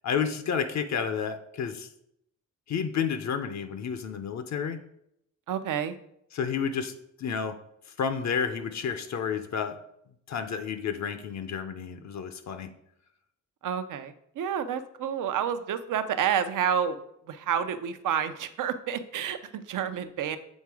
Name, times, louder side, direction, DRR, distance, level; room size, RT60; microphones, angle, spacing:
voice 1, 0.0-1.9 2.7-4.8 6.3-6.9 7.2-7.6 8.0-9.8 10.3-12.7, left 7 dB, 60° left, 9 dB, 0.6 m, -30 dB
voice 2, 5.5-6.0 13.6-17.0 17.3-20.4, right 8 dB, 80° right, 10 dB, 0.6 m, -29 dB
7.3 x 3.7 x 4.8 m, 0.74 s
wide cardioid pair, 125°, 31 cm